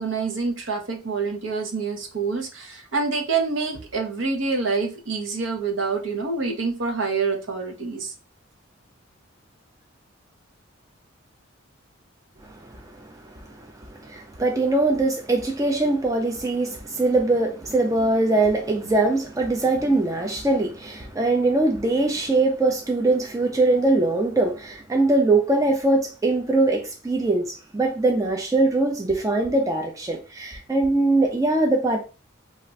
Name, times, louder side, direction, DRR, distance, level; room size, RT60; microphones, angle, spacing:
voice 1, 0.0-8.1, right 4 dB, 65° right, 0.7 m, -26 dB
voice 2, 12.6-13.2 13.5-32.0, right 2 dB, 15° right, 0.4 m, -22 dB
2.4 x 2.1 x 3.8 m
head